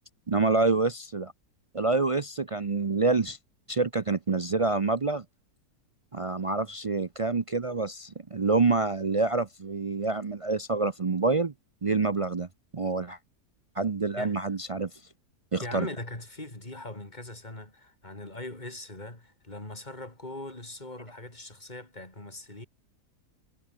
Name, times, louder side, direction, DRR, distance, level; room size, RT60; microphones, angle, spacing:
voice 1, 0.3-1.3 1.7-3.4 3.7-5.2 6.1-11.5 11.8-12.5 12.7-13.2 13.8-14.9 15.5-15.9, right 3 dB, 55° right, 0.3 m, -27 dB
voice 2, 15.6-22.7, left 2 dB, 25° left, 5.1 m, -40 dB
omnidirectional pair, 1.7 m